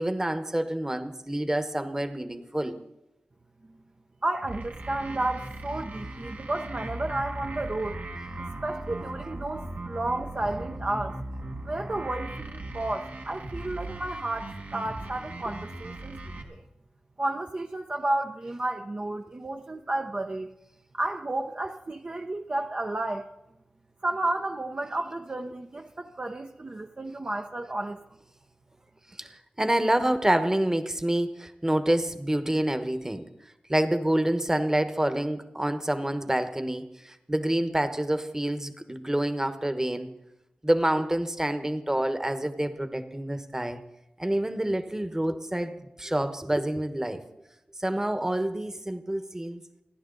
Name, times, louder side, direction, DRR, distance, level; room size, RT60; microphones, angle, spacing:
voice 1, 0.0-2.8 29.2-33.3 33.7-40.1 40.6-43.8 44.2-47.2 47.8-49.6, right 1 dB, 15° right, 9 dB, 1.2 m, -27 dB
voice 2, 4.2-8.0 8.4-11.2 11.6-16.2 16.4-16.6 17.2-20.5 20.9-23.3 24.0-28.0, right 2 dB, 40° right, 3 dB, 0.8 m, -32 dB
sound 1, 4.4-16.4, right 2 dB, 65° right, 1.9 m, -38 dB
29.5 x 11.0 x 4.0 m, 0.91 s
wide cardioid pair, 80°, 3 cm